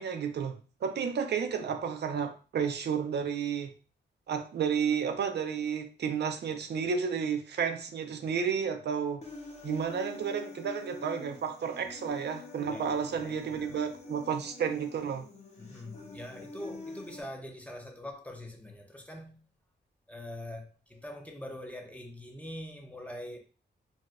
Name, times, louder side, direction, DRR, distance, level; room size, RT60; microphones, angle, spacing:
voice 1, 0.0-3.7 4.3-9.2 9.6-15.3, right 7 dB, 65° right, 0.4 m, -32 dB
Human voice, 9.2-17.2, left 3 dB, 35° left, 0.8 m, -45 dB
voice 2, 12.7-13.9 15.6-19.4 20.1-23.4, left 1 dB, 5° left, 0.5 m, -44 dB
4.1 x 2.1 x 2.4 m
wide cardioid pair, 105°, 19 cm